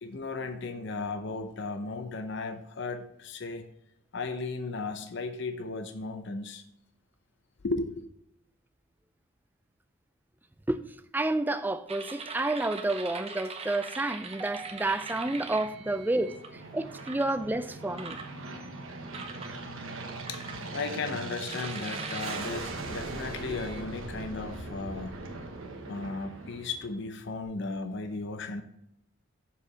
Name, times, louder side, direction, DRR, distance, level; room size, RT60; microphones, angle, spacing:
voice 1, 0.0-3.7 4.1-6.6 7.6-8.0 18.4-25.3 25.8-28.6, left 3 dB, 60° left, 0.7 m, -36 dB
voice 2, 11.1-18.2, right 2 dB, 10° right, 0.3 m, -30 dB
sound 1, 11.9-16.5 17.0-17.4 18.0-18.7 19.1-19.5 20.3-21.0 21.5-23.8, right 4 dB, 30° right, 0.7 m, -42 dB
Aircraft, 14.5-27.2, right 3 dB, 80° right, 1.1 m, -41 dB
7.0 x 5.0 x 5.0 m
head